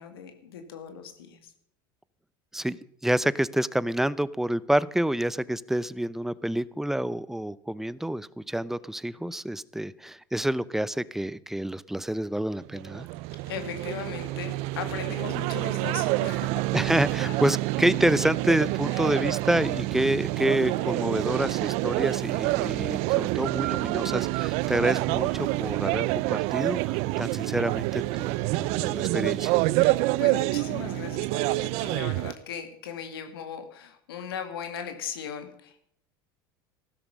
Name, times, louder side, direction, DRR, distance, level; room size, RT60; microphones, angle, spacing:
voice 1, 0.0-1.5 13.5-16.6 17.2-17.4 18.9-19.0 29.8-35.9, left 7 dB, 80° left, 7 dB, 2.3 m, -38 dB
voice 2, 3.0-13.1 16.7-29.6, right 1 dB, 5° right, 19 dB, 0.6 m, -28 dB
sound 1, 12.7-32.3, right 20 dB, 60° right, 0.5 m, -27 dB
15.0 x 13.0 x 5.3 m, 0.66 s
hypercardioid pair, 85°, 12 cm